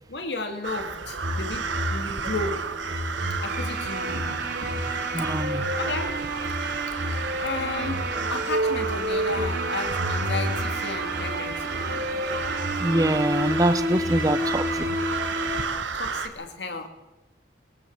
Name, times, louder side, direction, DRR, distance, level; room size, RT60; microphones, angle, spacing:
voice 1, 0.1-2.6 3.4-4.7 5.2-5.3 5.7-6.1 7.4-11.6 15.9-16.9, left 2 dB, 65° left, 6 dB, 2.6 m, -33 dB
sound 1, 0.6-16.3, right 5 dB, 85° right, 1.7 m, -33 dB
sound 2, 1.2-15.7, right 1 dB, 60° right, 3.3 m, -29 dB
voice 2, 5.1-5.7 12.8-15.1, right 1 dB, 20° right, 12 dB, 0.8 m, -24 dB
21.0 x 17.5 x 7.4 m, 1.1 s
head